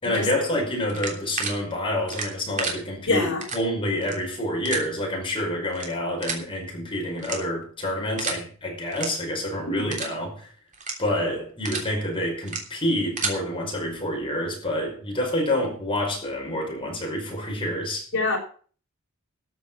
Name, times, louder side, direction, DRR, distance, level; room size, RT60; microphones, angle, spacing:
voice 1, 0.0-10.5 11.0-18.1, left 1 dB, 25° left, 5.3 m, -28 dB
sound 1, 0.9-1.5 2.1-2.7 3.4-3.6 4.0-4.1 4.6-4.8 5.7-5.9 6.2-6.4 7.2-7.6 8.2-8.4 8.9-9.1 9.4-9.6 9.9-10.1 10.7-10.9 11.4-11.9 12.4-12.6 13.0-13.3, right 4 dB, 35° right, 3.2 m, -30 dB
voice 2, 3.1-3.4 9.7-9.9 18.1-18.4, left 2 dB, 55° left, 5.3 m, -24 dB
13.5 x 7.4 x 7.5 m
head